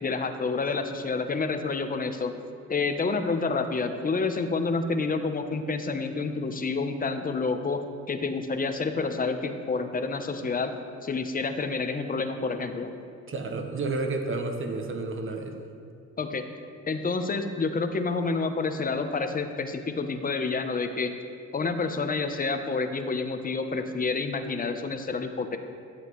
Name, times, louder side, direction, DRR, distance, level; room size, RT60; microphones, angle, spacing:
voice 1, 0.0-2.4 2.7-7.8 8.1-10.7 11.0-12.9 16.2-16.4 16.9-21.1 21.5-25.6, left 4 dB, 30° left, 7 dB, 0.7 m, -28 dB
voice 2, 13.3-15.5, right 3 dB, 45° right, 5 dB, 1.1 m, -31 dB
12.5 x 7.6 x 3.1 m, 2.3 s
cardioid pair, 90°, 30 cm